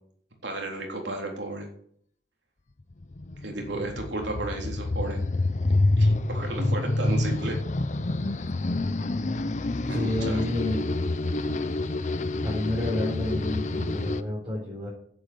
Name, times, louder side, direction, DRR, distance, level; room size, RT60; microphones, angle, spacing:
voice 1, 0.4-1.7 3.4-5.2 6.0-7.6 9.9-10.4, right 2 dB, 85° right, 1 dB, 3.6 m, -33 dB
sound 1, 2.9-14.2, left 2 dB, 45° left, 0.7 m, -27 dB
voice 2, 9.9-10.8 12.4-14.9, left 1 dB, 25° right, -6 dB, 4.8 m, -29 dB
10.0 x 8.8 x 7.9 m, 0.63 s
head